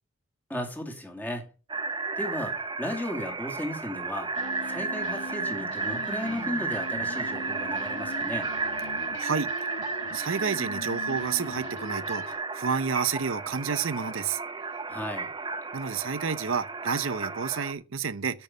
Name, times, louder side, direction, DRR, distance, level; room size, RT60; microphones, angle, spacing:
voice 1, 0.5-1.4 2.2-4.3 4.7-8.5 14.9-15.3, left 1 dB, 10° left, 2.5 m, -35 dB
sound 1, 1.7-17.7, right 4 dB, 20° right, 0.8 m, -33 dB
sound 2, 4.3-12.4, left 2 dB, 65° left, 1.3 m, -41 dB
voice 2, 9.2-9.5 10.1-14.4 15.7-18.4, right 6 dB, 75° right, 0.7 m, -30 dB
8.6 x 6.2 x 7.1 m
head